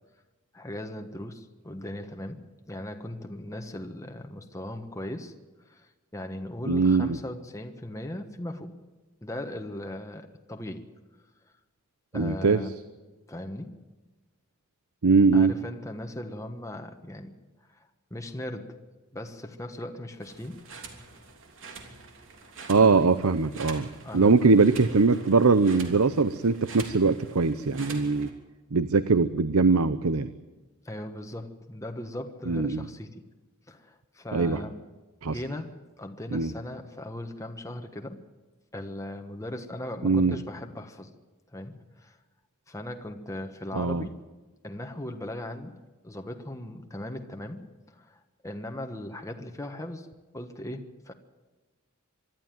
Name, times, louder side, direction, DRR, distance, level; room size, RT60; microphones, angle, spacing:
voice 1, 0.5-2.4 2.7-5.3 5.6-8.7 9.2-10.9 12.1-12.7 13.3-13.8 15.3-17.3 17.7-18.8 19.1-20.7 22.7-23.0 24.0-24.7 30.8-33.1 33.7-34.8 35.3-38.2 38.7-41.1 41.5-42.2 42.7-44.2 44.6-50.1 50.3-51.1, left 1 dB, 15° left, 4 dB, 1.3 m, -38 dB
voice 2, 6.7-7.2 12.1-12.6 15.0-15.5 22.7-23.9 24.1-28.3 28.7-30.3 32.5-32.9 34.3-34.6 35.2-35.4 36.3-36.5 40.0-40.4 43.7-44.1, right 4 dB, 80° right, 14 dB, 0.8 m, -21 dB
sound 1, 20.2-28.3, right 4 dB, 65° right, 3.1 m, -45 dB
24.5 x 12.5 x 9.1 m, 1.2 s
head